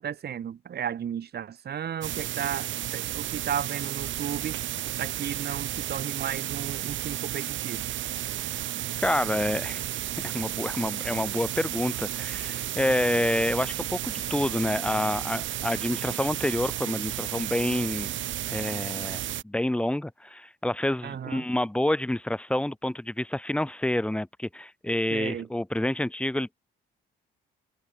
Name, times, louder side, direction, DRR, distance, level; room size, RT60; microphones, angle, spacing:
voice 1, 0.0-4.6 5.0-7.9 21.0-21.4 25.1-25.5, right 9 dB, 55° right, 1.9 m, -34 dB
sound 1, 2.0-19.4, right 13 dB, 75° right, 1.3 m, -33 dB
voice 2, 9.0-9.9 10.2-18.1 18.5-26.6, left 1 dB, 5° left, 1.7 m, -28 dB
cardioid pair, 90°, 20 cm